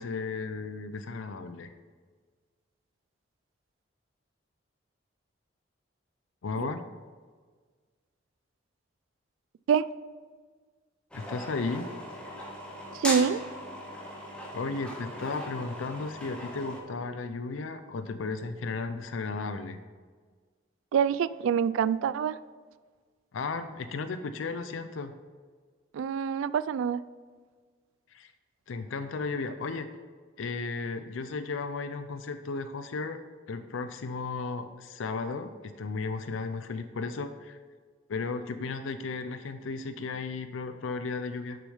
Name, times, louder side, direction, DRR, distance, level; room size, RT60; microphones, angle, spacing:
voice 1, 0.0-1.7 6.4-6.8 11.1-11.9 14.5-19.8 23.3-25.1 28.1-28.3 28.7-29.9 30.4-33.2 33.5-37.6 38.1-41.6, left 4 dB, 85° left, 10 dB, 0.5 m, -34 dB
sound 1, 11.1-16.8, equal, 5° left, 1.2 m, -39 dB
voice 2, 12.9-13.4 20.9-22.4 25.9-27.0, right 7 dB, 85° right, 17 dB, 0.3 m, -26 dB
6.8 x 6.1 x 5.5 m, 1.5 s
head